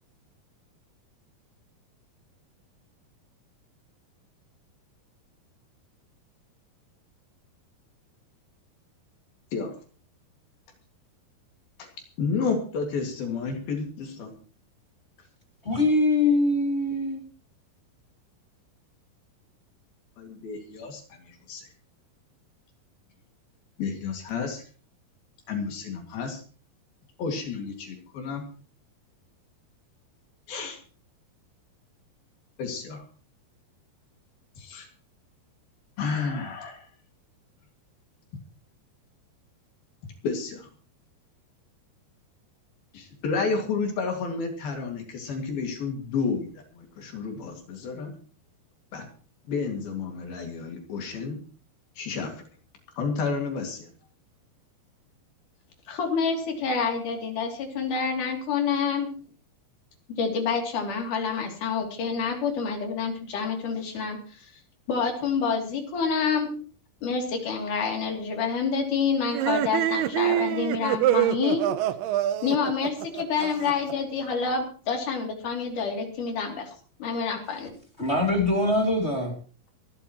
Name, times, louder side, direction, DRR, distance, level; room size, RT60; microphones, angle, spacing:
voice 1, 12.2-14.3 20.2-21.7 23.8-24.6 25.5-26.4 27.2-28.4 30.5-30.8 32.6-33.0 34.6-34.9 36.0-36.9 40.2-40.7 42.9-48.1 48.9-49.1 49.5-51.4 52.0-52.4 53.0-53.9, left 5 dB, 70° left, 4.1 m, -31 dB
voice 2, 15.6-17.2 78.0-79.3, left 2 dB, 20° left, 2.4 m, -23 dB
voice 3, 55.9-59.1 60.2-64.2 64.9-66.5 67.0-71.7 72.4-76.7 77.0-77.7, left 5 dB, 55° left, 4.4 m, -27 dB
sound 1, 69.3-73.9, right 12 dB, 85° right, 2.8 m, -26 dB
23.5 x 12.5 x 3.1 m
omnidirectional pair, 4.5 m